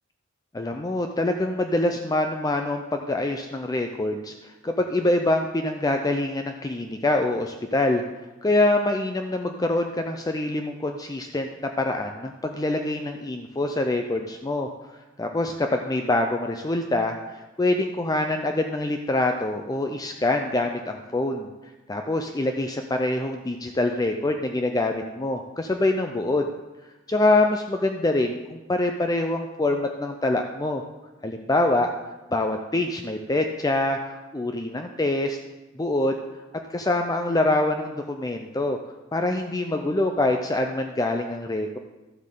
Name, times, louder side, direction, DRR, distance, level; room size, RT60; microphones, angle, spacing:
voice 1, 0.5-8.0 8.4-14.9 15.2-21.5 21.9-26.5 27.1-30.8 31.2-31.9 32.3-34.0 34.3-35.4 35.8-36.2 36.7-38.8 39.1-41.8, left 2 dB, 20° left, 4 dB, 0.5 m, -25 dB
12.5 x 7.6 x 3.8 m, 1.1 s
head